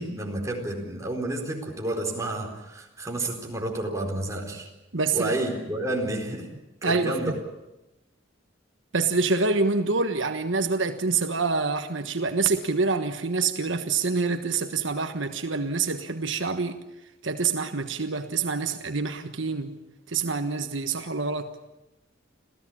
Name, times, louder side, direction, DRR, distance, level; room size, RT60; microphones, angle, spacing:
voice 1, 0.0-4.7 5.1-6.5 6.8-7.3, right 1 dB, 15° right, 4.4 m, -30 dB
voice 2, 4.9-5.3 6.8-7.3 8.9-16.8 17.2-19.8 20.1-21.5, right 4 dB, 75° right, 1.4 m, -26 dB
27.0 x 16.0 x 8.7 m
head